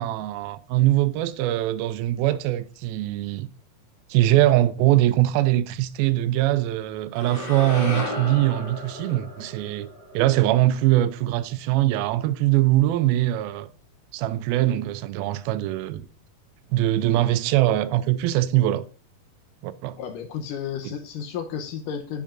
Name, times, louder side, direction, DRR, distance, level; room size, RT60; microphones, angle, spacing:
voice 1, 0.0-3.5 4.1-9.9 10.1-13.7 14.1-16.0 16.7-18.8 19.6-20.0 20.8-20.9, right 15 dB, 85° right, 2.4 m, -22 dB
sound 1, 7.1-11.4, left 1 dB, 40° left, 0.7 m, -34 dB
voice 2, 20.0-22.2, left 7 dB, 75° left, 2.2 m, -32 dB
8.6 x 7.3 x 2.5 m
omnidirectional pair, 4.3 m